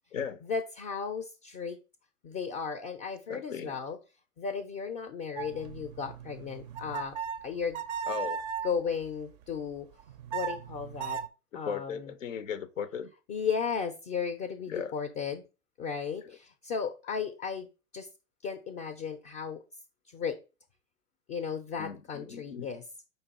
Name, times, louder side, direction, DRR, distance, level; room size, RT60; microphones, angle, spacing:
voice 1, 0.4-1.8 2.2-4.0 4.4-7.2 7.4-7.8 8.6-9.9 10.3-11.2 11.5-12.1 13.3-15.4 15.8-17.7 17.9-18.1 18.4-19.6 20.1-20.4 21.3-22.8, left 6 dB, 25° left, 0.4 m, -35 dB
voice 2, 3.3-3.8 8.1-8.4 11.6-13.1 14.7-14.9 16.2-16.4 21.8-22.7, left 7 dB, 85° left, 0.6 m, -37 dB
sound 1, 5.4-8.8 10.0-11.3, right 6 dB, 35° right, 0.4 m, -37 dB
5.1 x 2.3 x 4.0 m
figure-of-eight pair, 105°, 37 cm